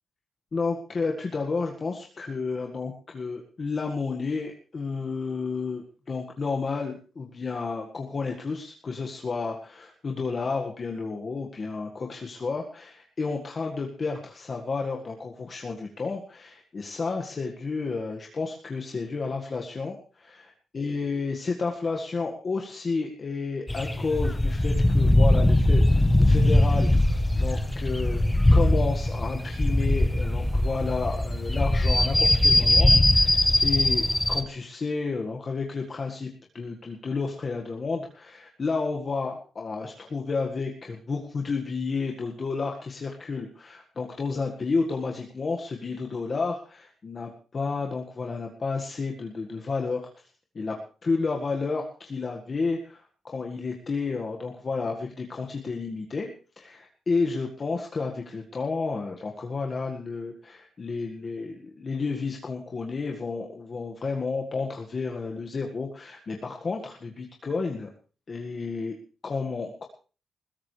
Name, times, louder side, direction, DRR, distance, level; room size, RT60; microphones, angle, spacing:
voice 1, 0.5-28.2 28.5-50.3 50.5-56.3 56.6-67.9 68.3-69.0 69.2-69.8, left 4 dB, 35° left, 1 dB, 1.8 m, -31 dB
sound 1, 23.7-34.4, left 1 dB, 10° left, 1.2 m, -21 dB
20.5 x 16.5 x 3.4 m, 0.37 s
cardioid pair, 110°, 0 cm